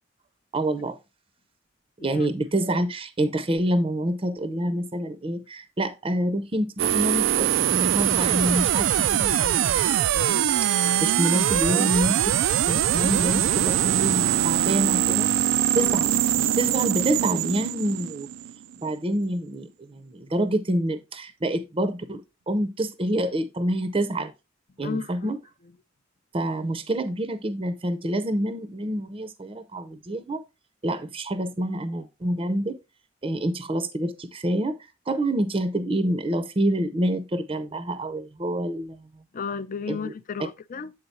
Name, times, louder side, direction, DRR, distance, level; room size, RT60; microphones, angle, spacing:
voice 1, 0.5-1.0 2.0-12.4 12.7-15.3 15.7-16.2 16.6-18.3 18.8-24.3 24.8-25.4 26.3-30.4 30.8-32.8 33.2-34.8 35.1-39.1 39.9-40.1, right 1 dB, 30° right, 0.6 m, -27 dB
sound 1, 6.8-18.7, right 11 dB, 85° right, 0.3 m, -22 dB
voice 2, 24.8-25.3 39.3-40.9, left 5 dB, 45° left, 0.5 m, -33 dB
8.2 x 3.9 x 4.1 m
head